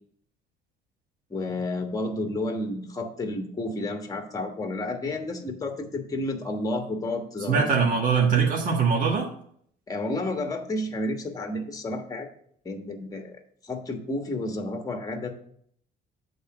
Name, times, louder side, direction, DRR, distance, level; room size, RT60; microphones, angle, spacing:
voice 1, 1.3-7.9 9.9-12.3 12.6-13.4 13.6-15.3, left 2 dB, 20° left, 5 dB, 1.3 m, -31 dB
voice 2, 7.5-9.3, right 5 dB, 50° right, 0 dB, 1.6 m, -22 dB
8.3 x 3.9 x 6.0 m, 0.64 s
cardioid pair, 110°, 17 cm